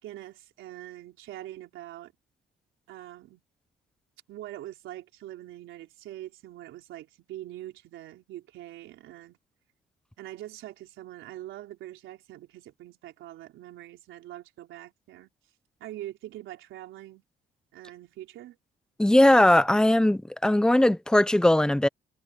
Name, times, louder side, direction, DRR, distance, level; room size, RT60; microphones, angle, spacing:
voice 1, 0.0-2.1 2.9-3.4 4.3-9.4 10.2-15.3 15.8-17.2 17.7-18.6, right 14 dB, 90° right, 3.7 m, -43 dB
voice 2, 19.0-21.9, left 1 dB, 5° left, 0.7 m, -19 dB
cardioid pair, 90°, 20 cm